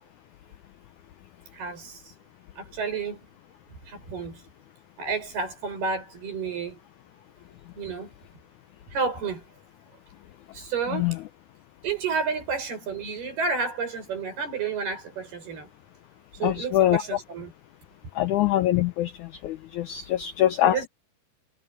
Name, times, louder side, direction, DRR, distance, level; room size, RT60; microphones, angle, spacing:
voice 1, 1.5-2.0 2.6-3.2 3.9-4.4 5.0-6.8 7.8-8.1 8.9-9.4 10.5-11.1 11.8-15.7 16.4-17.5 20.6-20.9, right 5 dB, 80° right, 8.9 m, -30 dB
voice 2, 10.9-11.2 16.4-17.2 18.1-20.8, left 13 dB, 85° left, 1.7 m, -24 dB
omnidirectional pair, 4.4 m